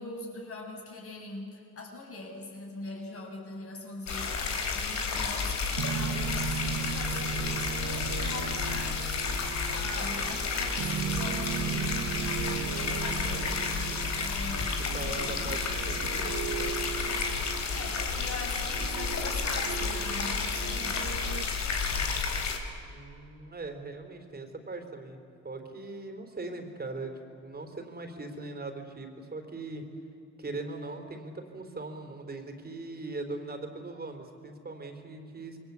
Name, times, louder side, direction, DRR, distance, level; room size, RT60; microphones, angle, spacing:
voice 1, 0.0-7.5 7.8-13.9 14.2-15.4 17.7-21.1, left 2 dB, 50° left, 0 dB, 7.5 m, -42 dB
sound 1, 4.1-22.6, left 5 dB, 65° left, 3.6 m, -31 dB
sound 2, 5.8-21.4, right 8 dB, 75° right, 1.2 m, -37 dB
voice 2, 14.7-17.4 22.9-25.2 25.4-29.8 30.4-35.6, right 2 dB, 30° right, 5 dB, 4.1 m, -40 dB
27.0 x 22.0 x 8.5 m, 2.7 s
cardioid pair, 90°, 30 cm